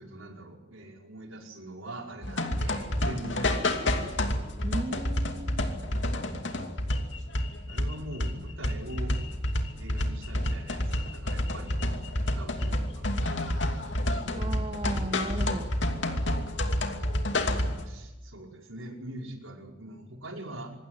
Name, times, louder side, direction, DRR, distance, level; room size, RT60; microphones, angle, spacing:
voice 1, 0.0-3.9 7.7-9.1 9.8-11.8 12.2-13.1 14.3-14.6 17.8-20.8, right 1 dB, 85° right, 2 dB, 5.3 m, -42 dB
sound 1, 2.2-17.8, left 1 dB, 60° left, 2.7 m, -29 dB
voice 2, 4.6-5.8 14.4-15.7, right 1 dB, 25° right, 9 dB, 1.0 m, -36 dB
26.0 x 20.5 x 9.9 m, 1.1 s
head